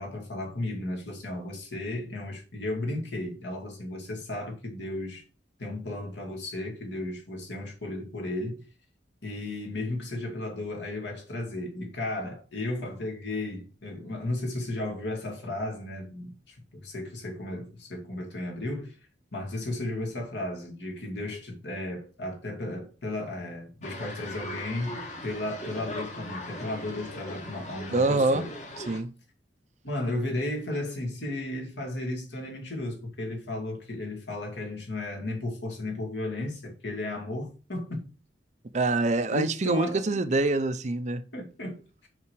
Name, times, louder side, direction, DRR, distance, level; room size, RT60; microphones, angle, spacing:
voice 1, 0.0-5.2 5.6-8.6 9.2-19.0 19.3-28.5 29.8-38.1 39.3-40.2 41.3-42.1, left 1 dB, 70° left, 2.2 m, -34 dB
sound 1, 23.8-29.0, left 1 dB, 40° left, 1.4 m, -39 dB
voice 2, 27.9-28.4 28.8-29.1 38.7-41.2, right 2 dB, 40° right, 0.5 m, -25 dB
5.7 x 4.8 x 4.7 m
head